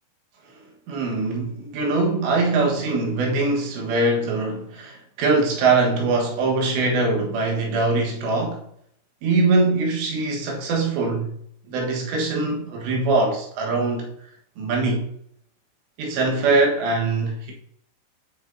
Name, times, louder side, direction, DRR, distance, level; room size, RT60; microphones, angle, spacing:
voice 1, 0.9-8.6 9.2-11.3 11.7-14.1 14.6-15.0 16.0-17.5, right 3 dB, 65° right, 3.4 m, -22 dB
10.5 x 6.0 x 2.7 m
omnidirectional pair, 5.9 m